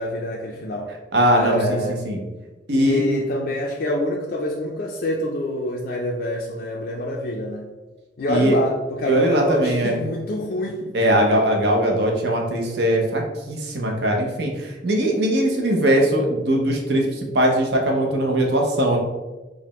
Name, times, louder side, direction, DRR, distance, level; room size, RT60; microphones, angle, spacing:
voice 1, 0.0-0.9 1.4-2.0 2.8-7.7 8.2-10.9, left 1 dB, 55° left, -2 dB, 0.4 m, -26 dB
voice 2, 1.1-1.8 2.0-2.2 2.7-3.0 8.3-8.5 9.1-9.9 10.9-13.2 13.5-19.0, right 1 dB, 65° right, 0 dB, 0.7 m, -20 dB
4.8 x 2.1 x 3.0 m, 1.1 s
head